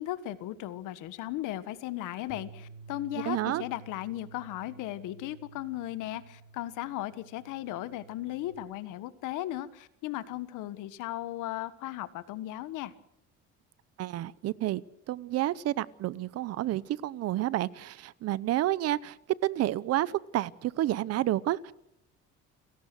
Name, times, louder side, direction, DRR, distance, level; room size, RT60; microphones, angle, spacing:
voice 1, 0.0-12.9, left 14 dB, 80° left, 14 dB, 1.5 m, -36 dB
Bass guitar, 2.3-8.5, right 4 dB, 75° right, 3.4 m, -51 dB
voice 2, 3.3-3.6 14.0-14.8 15.1-19.2 19.4-21.7, right 14 dB, 55° right, 20 dB, 0.8 m, -30 dB
30.0 x 17.0 x 6.2 m, 0.77 s
cardioid pair, 155°, 30 cm